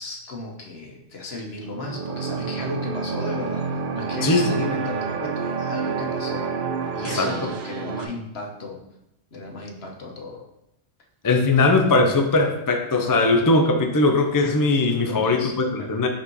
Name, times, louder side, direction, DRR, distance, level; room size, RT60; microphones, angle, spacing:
voice 1, 0.0-6.5 6.9-8.8 9.3-10.4 15.1-15.9, left 2 dB, 65° left, 1 dB, 1.4 m, -35 dB
sound 1, 1.6-8.0, right 5 dB, 55° right, 0.7 m, -28 dB
voice 2, 4.2-4.7 7.0-7.3 11.2-15.4 15.7-16.1, left 2 dB, 25° left, 4 dB, 0.5 m, -20 dB
5.4 x 4.3 x 5.5 m, 0.84 s
omnidirectional pair, 1.1 m